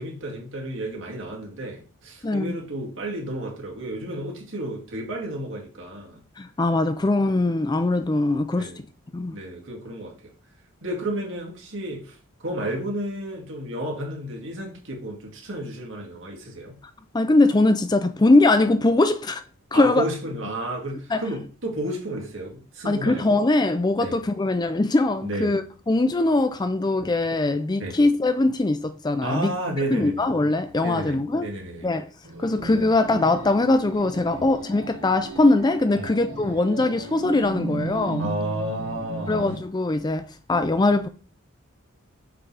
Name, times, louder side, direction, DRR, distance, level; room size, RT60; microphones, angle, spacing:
voice 1, 0.0-6.2 8.6-8.8 9.3-10.1 10.8-12.2 12.4-16.8 19.7-23.4 24.0-24.2 25.2-25.6 27.8-27.9 29.2-30.2 30.8-31.9 34.3-34.4 35.9-36.1 38.2-39.4, right 1 dB, 60° right, 2.4 m, -32 dB
voice 2, 2.2-2.6 6.4-8.9 9.1-9.4 17.1-19.4 19.7-20.0 21.1-21.2 22.8-29.5 29.9-31.5 31.8-32.1 32.4-38.3 39.3-40.2 40.5-41.1, left 2 dB, 20° left, 0.4 m, -21 dB
sound 1, 32.2-39.6, right 2 dB, 80° right, 1.6 m, -35 dB
7.1 x 6.1 x 3.3 m
head